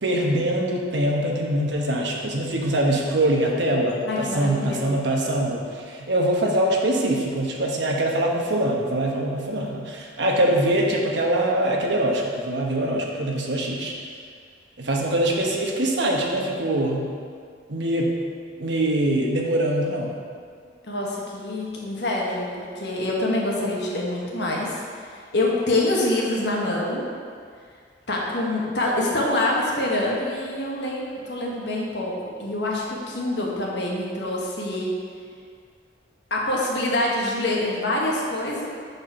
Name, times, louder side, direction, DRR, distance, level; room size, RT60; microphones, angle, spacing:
voice 1, 0.0-13.9 14.8-17.1 17.7-18.1 18.6-20.2, right 1 dB, 70° right, -1 dB, 1.1 m, -23 dB
voice 2, 4.1-4.9 20.8-22.4 22.8-24.8 25.3-27.0 28.1-32.1 32.4-34.9 36.3-38.7, left 1 dB, 65° left, -3 dB, 1.4 m, -25 dB
6.9 x 4.3 x 5.9 m, 2.1 s
head